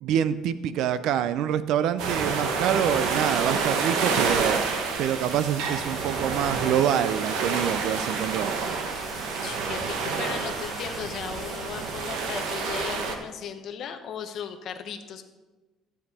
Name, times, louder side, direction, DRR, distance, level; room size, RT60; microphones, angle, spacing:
voice 1, 0.0-4.6 5.0-8.6, right 10 dB, 60° right, 14 dB, 0.5 m, -26 dB
sound 1, 2.0-13.2, right 5 dB, 85° right, 1.1 m, -28 dB
sound 2, 2.8-12.8, left 2 dB, 5° left, 1.5 m, -45 dB
voice 2, 9.4-15.2, left 8 dB, 45° left, 7 dB, 0.8 m, -36 dB
12.5 x 7.3 x 4.2 m, 1.2 s
cardioid pair, 175°, 0 cm